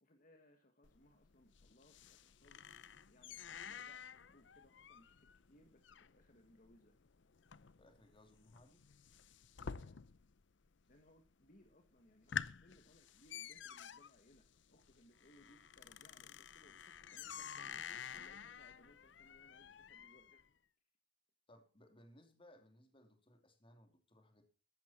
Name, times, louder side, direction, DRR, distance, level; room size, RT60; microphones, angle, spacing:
voice 1, 0.0-7.0 9.6-10.0 10.9-20.4, left 1 dB, 45° left, 5 dB, 1.5 m, -67 dB
sound 1, 0.8-10.4 10.7-11.3 11.7-11.8 12.1-20.4, left 7 dB, 65° left, 0.6 m, -50 dB
voice 2, 7.8-8.8 21.5-24.4, left 1 dB, 25° left, 6 dB, 2.8 m, -64 dB
14.5 x 12.0 x 4.4 m, 0.34 s
head